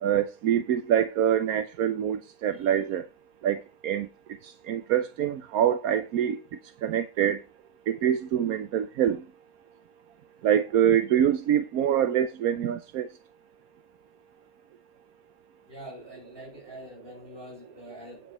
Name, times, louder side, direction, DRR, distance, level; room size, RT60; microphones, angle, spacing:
voice 1, 0.0-3.0 3.4-3.6 3.8-4.1 4.7-6.4 6.8-7.4 7.9-9.2 10.4-13.1, right 10 dB, 80° right, 1.1 m, -25 dB
voice 2, 15.7-18.2, equal, 40° right, 7.0 m, -45 dB
9.4 x 7.8 x 4.2 m
omnidirectional pair, 1.5 m